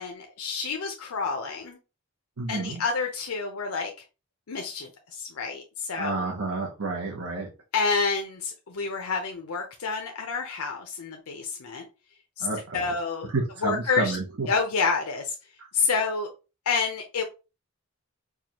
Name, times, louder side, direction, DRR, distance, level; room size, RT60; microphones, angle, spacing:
voice 1, 0.0-1.8 2.5-3.9 4.5-6.2 7.7-11.9 12.4-12.5 12.7-13.3 13.6-14.2 14.5-15.4 15.7-16.3 16.7-17.2, left 4 dB, 80° left, 3 dB, 0.6 m, -28 dB
voice 2, 2.4-2.8 5.9-7.5 12.4-12.9 13.3-14.5, right 3 dB, 80° right, 0 dB, 0.8 m, -30 dB
4.7 x 2.2 x 2.9 m, 0.30 s
head